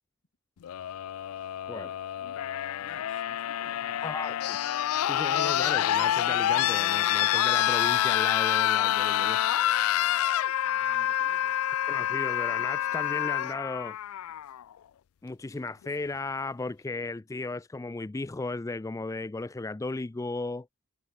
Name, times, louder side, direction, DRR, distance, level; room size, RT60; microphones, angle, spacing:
sound 1, 0.6-14.6 15.8-15.9, left 12 dB, 90° left, 0.3 m, -27 dB
voice 1, 1.6-2.0 4.0-4.6 5.1-9.4 11.9-14.0 15.2-20.7, left 3 dB, 15° left, 0.3 m, -35 dB
voice 2, 2.8-4.1 10.6-11.6, left 4 dB, 60° left, 2.5 m, -50 dB
head